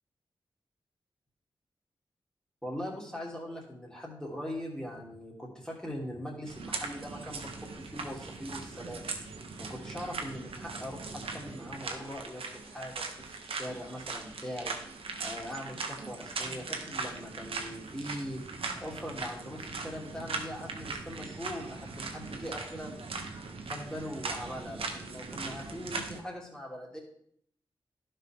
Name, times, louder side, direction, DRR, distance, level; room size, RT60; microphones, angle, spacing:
voice 1, 2.6-9.1 9.6-12.4 12.7-14.7 15.2-18.4 18.8-23.2 23.7-27.0, equal, 5° left, -3 dB, 3.0 m, -41 dB
sound 1, 6.5-26.2, right 4 dB, 85° right, 1.0 m, -40 dB
11.5 x 5.5 x 3.6 m, 0.66 s
cardioid pair, 50°, 9 cm